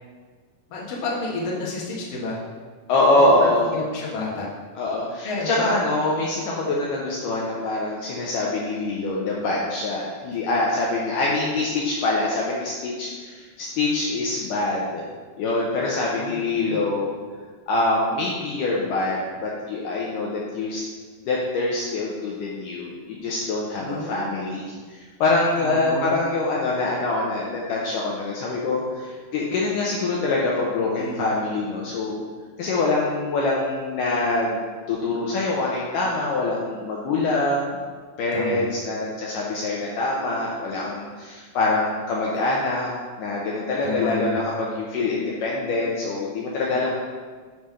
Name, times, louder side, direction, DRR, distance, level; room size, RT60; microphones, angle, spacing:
voice 1, 0.7-2.4 3.2-4.5 5.2-5.7 6.5-6.6 11.4-11.6 16.2-16.9 23.8-24.6 25.6-26.2 31.0-31.2 38.3-38.6 43.8-44.4 46.7-46.9, left 2 dB, 55° left, -4 dB, 2.0 m, -31 dB
voice 2, 2.9-3.7 4.8-15.0 15.4-17.2 17.7-20.8 21.3-32.2 32.6-37.8 38.2-42.9 43.2-46.9, left 2 dB, 75° left, -4 dB, 2.2 m, -24 dB
9.5 x 3.3 x 5.6 m, 1.5 s
omnidirectional pair, 4.2 m